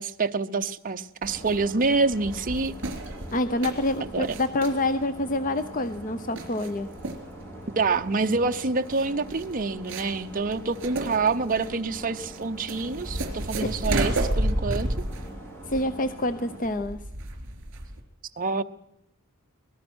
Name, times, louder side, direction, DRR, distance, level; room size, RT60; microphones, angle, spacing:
voice 1, 0.0-2.7 4.0-4.3 7.8-14.9 18.4-18.6, right 3 dB, 40° right, 6 dB, 0.8 m, -27 dB
sound 1, 1.2-16.6, right 1 dB, 10° left, 4.9 m, -43 dB
sound 2, 1.2-18.0, right 1 dB, 55° right, 3.6 m, -33 dB
voice 2, 3.3-6.9 15.7-17.0, left 1 dB, 35° left, 11 dB, 0.8 m, -27 dB
24.5 x 19.0 x 6.3 m, 0.82 s
head